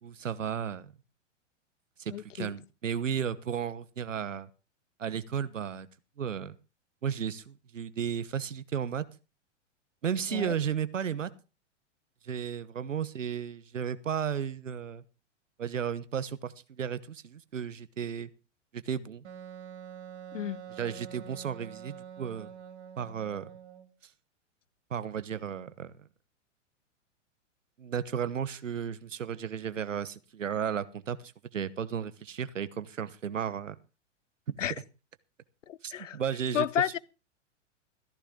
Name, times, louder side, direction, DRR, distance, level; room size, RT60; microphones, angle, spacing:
voice 1, 0.0-0.9 2.0-4.5 5.0-5.9 6.2-6.6 7.0-9.0 10.0-11.3 12.2-15.0 15.6-18.3 18.7-19.2 20.8-22.5 23.0-23.5 24.9-26.1 27.8-33.8 34.5-34.6 35.8-36.7, right 8 dB, 85° right, 1.1 m, -34 dB
voice 2, 2.1-2.5 10.3-10.5 20.3-20.6 34.6-34.7 35.7-36.2 36.5-37.0, left 10 dB, 80° left, 0.7 m, -31 dB
Wind instrument woodwind instrument, 19.2-23.9, right 9 dB, 65° right, 2.4 m, -46 dB
15.0 x 13.5 x 3.7 m
hypercardioid pair, 105°, 37 cm